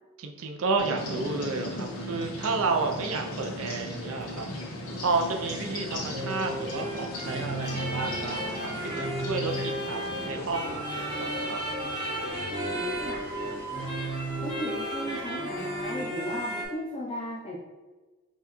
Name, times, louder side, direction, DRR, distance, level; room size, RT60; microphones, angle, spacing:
voice 1, 0.2-4.5 5.0-10.0 10.3-11.1 11.4-11.6, right 3 dB, 65° right, 4 dB, 0.5 m, -31 dB
sound 1, 0.8-10.6, left 1 dB, 90° left, 1.3 m, -38 dB
sound 2, 1.0-16.3, left 2 dB, 70° left, 0.7 m, -43 dB
sound 3, 6.1-16.6, right 1 dB, 20° right, 0.8 m, -33 dB
voice 2, 12.7-13.2 14.4-17.6, left 1 dB, 25° left, -7 dB, 0.5 m, -35 dB
5.5 x 2.3 x 3.0 m, 1.2 s
head